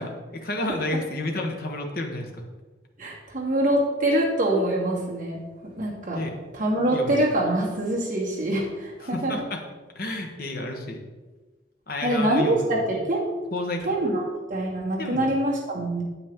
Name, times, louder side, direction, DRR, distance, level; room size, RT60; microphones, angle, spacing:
voice 1, 0.0-2.4 6.1-6.4 6.9-7.1 9.0-9.6 9.9-11.1 11.9-12.8 13.5-13.8 15.0-15.4, left 2 dB, 50° left, 2 dB, 1.2 m, -31 dB
voice 2, 3.0-6.2 6.5-9.5 12.0-13.3 13.8-14.2 14.5-16.0, right 1 dB, 45° right, -4 dB, 2.3 m, -25 dB
8.5 x 8.4 x 3.7 m, 1.3 s
head